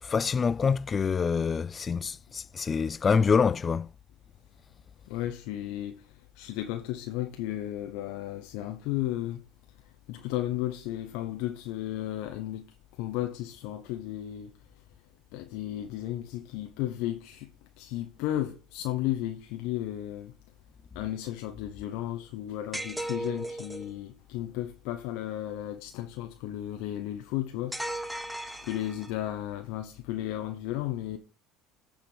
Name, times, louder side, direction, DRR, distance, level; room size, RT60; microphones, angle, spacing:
voice 1, 0.0-3.9, left 5 dB, 30° left, 0.3 m, -26 dB
voice 2, 5.1-5.9 6.4-9.4 10.1-12.7 13.0-14.5 15.3-17.5 17.8-20.3 20.9-28.0 28.6-31.2, left 13 dB, 75° left, 0.9 m, -34 dB
sound 1, 22.7-23.9 27.7-29.3, right 1 dB, ahead, 1.0 m, -36 dB
8.8 x 5.1 x 5.5 m
supercardioid pair, 105°, 0 cm